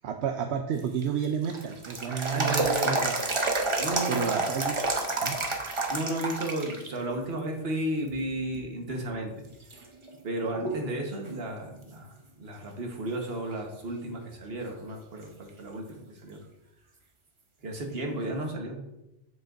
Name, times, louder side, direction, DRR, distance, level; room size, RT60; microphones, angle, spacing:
voice 1, 0.0-3.1 4.1-4.8 5.2-5.4, right 8 dB, 75° right, 4 dB, 0.8 m, -31 dB
sound 1, 0.8-6.9 7.3-7.4 8.1-8.6 9.1-9.2 9.7-10.9 11.2-11.3 14.7-14.8 17.8-17.9, right 2 dB, 30° right, 0.7 m, -29 dB
voice 2, 2.3-3.1 3.8-4.3 5.9-9.4 10.2-16.4 17.6-18.8, right 1 dB, 60° right, 1 dB, 1.4 m, -33 dB
8.0 x 7.5 x 2.5 m, 0.92 s
omnidirectional pair, 1.2 m